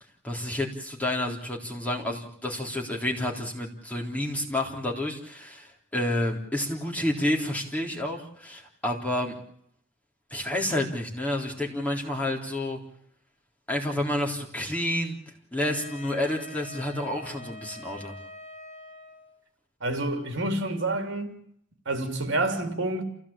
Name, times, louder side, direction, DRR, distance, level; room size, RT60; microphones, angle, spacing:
voice 1, 0.2-9.3 10.3-12.8 13.7-15.2 15.5-18.1, left 1 dB, 5° left, 3.8 m, -29 dB
Wind instrument woodwind instrument, 15.6-19.4, left 1 dB, 35° left, 5.5 m, -45 dB
voice 2, 19.8-21.4 21.8-23.0, right 2 dB, 60° right, 3.3 m, -28 dB
28.0 x 16.5 x 8.8 m
head